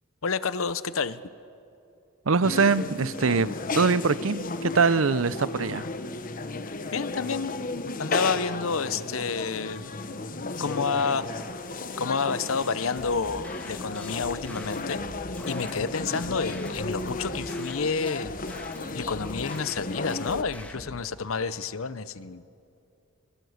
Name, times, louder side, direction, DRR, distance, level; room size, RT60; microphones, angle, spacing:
voice 1, 0.2-1.2 6.9-7.5 8.0-9.9 10.6-11.3 12.0-15.0 15.5-18.3 18.9-22.4, left 5 dB, 80° left, 15 dB, 0.8 m, -29 dB
voice 2, 2.3-3.5 3.7-5.8, right 4 dB, 75° right, 17 dB, 0.7 m, -23 dB
sound 1, 2.4-20.4, left 3 dB, 40° left, 1.0 m, -34 dB
sound 2, 12.9-21.0, equal, 5° left, 1.8 m, -44 dB
26.0 x 23.0 x 8.0 m, 2.7 s
head